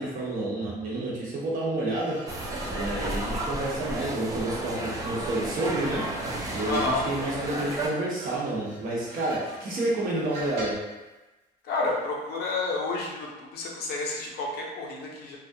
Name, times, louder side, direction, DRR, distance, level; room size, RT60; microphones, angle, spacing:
voice 1, 0.0-10.8, right 2 dB, 55° right, -5 dB, 0.8 m, -30 dB
sound 1, 1.9-5.2 5.6-10.9 11.9-12.1, right 1 dB, 90° right, 1.0 m, -43 dB
sound 2, 2.3-7.9, right 1 dB, 20° right, 0.3 m, -33 dB
voice 2, 6.6-7.0 11.6-15.4, left 3 dB, 70° left, -1 dB, 0.6 m, -30 dB
2.3 x 2.0 x 2.6 m, 1.1 s
cardioid pair, 110°, 17 cm